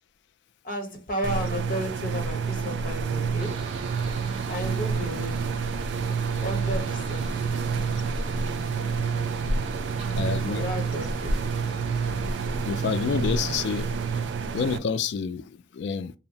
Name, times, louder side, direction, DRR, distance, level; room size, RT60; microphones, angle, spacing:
voice 1, 0.6-3.6 4.5-5.5 6.4-7.5 10.3-11.4 14.1-14.2, equal, 45° left, 0.9 m, -33 dB
sound 1, 1.2-14.8, right 5 dB, 80° right, 0.3 m, -28 dB
sound 2, 3.4-14.3, right 2 dB, 35° right, 0.6 m, -40 dB
voice 2, 10.2-10.7 12.7-13.9 14.5-16.1, left 6 dB, 75° left, 0.3 m, -28 dB
2.7 x 2.1 x 2.6 m
head